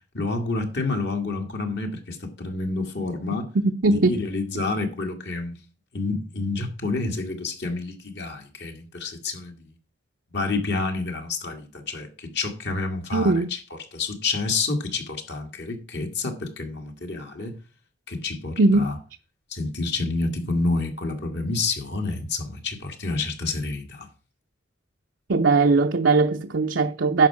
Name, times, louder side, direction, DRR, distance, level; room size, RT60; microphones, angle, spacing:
voice 1, 0.1-3.5 3.9-5.6 5.9-9.6 10.3-13.6 13.9-17.6 18.1-18.9 19.5-24.1, left 3 dB, 65° left, 2.1 m, -29 dB
voice 2, 3.5-4.2 13.1-13.5 18.6-19.0 25.3-27.3, right 3 dB, 80° right, 0.6 m, -20 dB
11.0 x 4.6 x 7.2 m
head